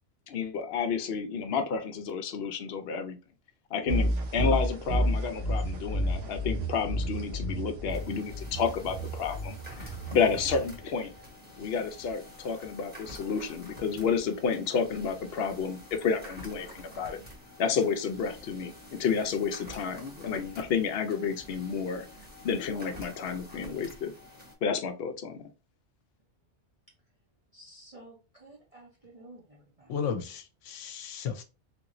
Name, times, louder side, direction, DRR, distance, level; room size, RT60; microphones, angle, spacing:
voice 1, 0.3-3.2 3.7-11.1 11.6-17.2 17.6-22.0 22.4-24.1 24.6-25.5, left 6 dB, 65° left, 0.7 m, -30 dB
sound 1, 3.9-11.3, equal, 75° right, 1.2 m, -31 dB
sound 2, 7.9-24.5, left 1 dB, 10° right, 0.9 m, -48 dB
voice 2, 27.5-29.9, right 2 dB, 35° right, 0.7 m, -52 dB
voice 3, 29.9-31.4, left 7 dB, 85° left, 0.9 m, -34 dB
3.5 x 2.9 x 2.5 m
omnidirectional pair, 1.2 m